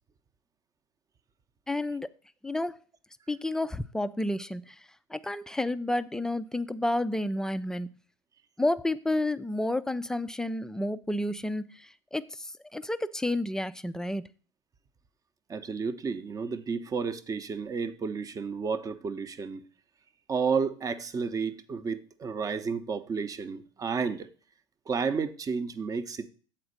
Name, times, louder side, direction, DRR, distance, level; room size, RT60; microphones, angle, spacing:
voice 1, 1.7-2.1 2.4-2.8 3.3-4.8 5.1-7.9 8.6-14.3, left 1 dB, 5° left, 0.4 m, -30 dB
voice 2, 15.5-19.6 20.3-24.3 24.9-26.3, right 5 dB, 20° right, 0.7 m, -31 dB
7.7 x 4.3 x 6.4 m
hypercardioid pair, 85°, 15 cm